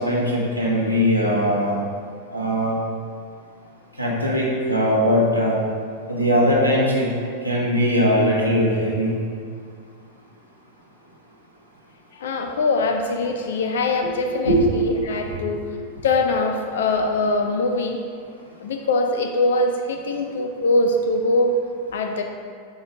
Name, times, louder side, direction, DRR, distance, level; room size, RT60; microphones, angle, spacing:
voice 1, 0.0-1.8 2.3-2.7 4.0-5.6 6.1-7.1 7.4-9.1 14.4-14.6 15.3-15.4, equal, 90° left, -5 dB, 1.5 m, -20 dB
voice 2, 12.1-15.7 16.0-18.0 18.6-21.6 21.9-22.2, left 2 dB, 60° left, 4 dB, 0.6 m, -22 dB
8.5 x 4.5 x 4.9 m, 2.1 s
figure-of-eight pair, 90°, 0 cm